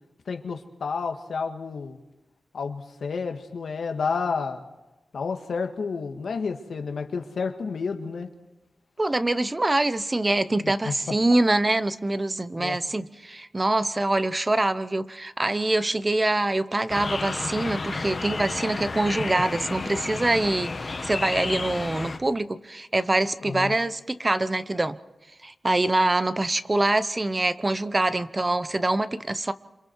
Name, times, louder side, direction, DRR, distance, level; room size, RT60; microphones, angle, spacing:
voice 1, 0.3-2.0 2.5-4.6 5.1-8.3 10.6-11.1 12.6-12.8 23.4-23.8, left 5 dB, 80° left, 5 dB, 1.9 m, -30 dB
voice 2, 9.0-25.0 25.4-29.5, right 2 dB, 25° right, 13 dB, 0.9 m, -24 dB
sound 1, 16.9-22.2, left 3 dB, 45° left, 1.8 m, -31 dB
27.5 x 26.5 x 4.7 m, 1.0 s
wide cardioid pair, 95°, 0 cm